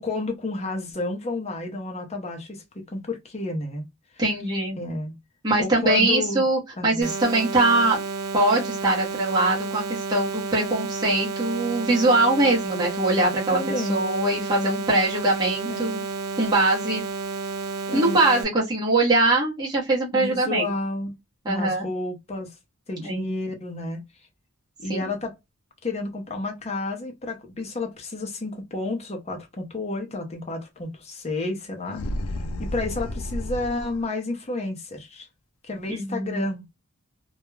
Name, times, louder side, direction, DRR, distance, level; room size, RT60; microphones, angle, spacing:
voice 1, 0.0-3.8 4.8-5.1 5.6-6.4 6.8-7.1 13.5-14.0 15.6-15.8 17.9-18.2 20.1-21.1 21.5-22.6 22.9-24.0 24.8-25.3 25.8-32.0 32.6-35.3 35.6-36.7, left 2 dB, 30° left, 0.6 m, -30 dB
voice 2, 4.2-4.8 5.4-8.0 8.3-16.0 16.4-17.0 17.9-20.7 21.4-21.9 23.0-23.3 24.9-25.1 35.9-36.5, right 2 dB, 20° right, 0.8 m, -22 dB
sound 1, 7.0-18.4, right 4 dB, 90° right, 0.6 m, -31 dB
sound 2, 31.9-34.1, left 1 dB, 80° left, 0.4 m, -31 dB
2.3 x 2.1 x 3.0 m
head